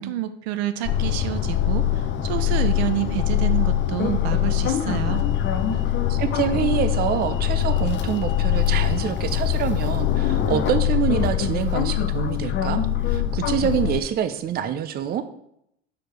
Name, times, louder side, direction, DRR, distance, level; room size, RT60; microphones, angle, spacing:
voice 1, 0.0-1.8 2.2-5.3, right 12 dB, 80° right, 10 dB, 0.7 m, -28 dB
sound 1, 0.8-14.0, left 11 dB, 40° left, 0.6 m, -23 dB
voice 2, 6.1-15.2, right 9 dB, 30° right, 10 dB, 0.5 m, -26 dB
4.9 x 4.5 x 4.6 m, 0.75 s
supercardioid pair, 100°, 31 cm